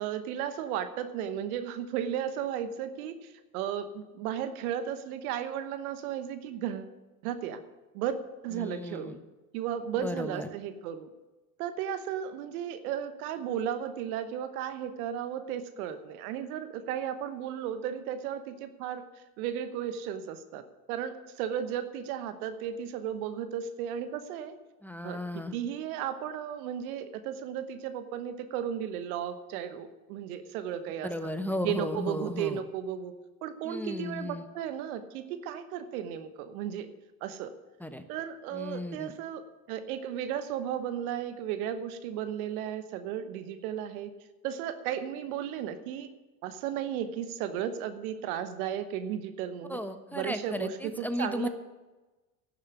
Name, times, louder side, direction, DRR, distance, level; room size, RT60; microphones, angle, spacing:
voice 1, 0.0-6.9 7.2-7.6 7.9-8.1 8.4-9.2 9.5-11.1 11.6-19.0 19.4-24.5 25.0-31.3 31.6-33.1 33.4-36.9 37.2-37.5 38.1-39.4 39.7-44.1 44.4-46.1 46.4-49.8 50.1-51.5, right 9 dB, 75° right, 11 dB, 1.2 m, -35 dB
voice 2, 8.5-9.2 10.0-10.5 24.8-25.6 31.0-32.6 33.6-34.4 37.8-38.0 38.5-39.1 49.7-51.5, left 1 dB, 5° left, 9 dB, 1.2 m, -34 dB
11.0 x 7.4 x 9.8 m, 1.2 s
hypercardioid pair, 70°, 43 cm